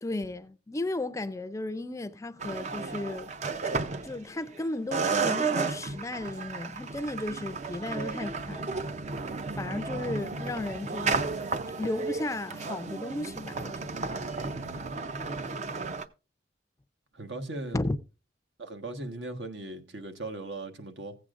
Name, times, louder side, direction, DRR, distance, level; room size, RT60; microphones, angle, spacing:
voice 1, 0.0-3.3 4.0-8.7 9.5-11.3 11.8-13.9 17.7-18.0, left 2 dB, 15° left, 0.4 m, -34 dB
sound 1, 2.4-4.6 4.9-16.1, right 4 dB, 40° right, 0.5 m, -33 dB
voice 2, 14.4-14.9 17.1-17.8 18.6-21.2, right 2 dB, 80° right, 1.3 m, -39 dB
15.5 x 8.3 x 2.5 m
head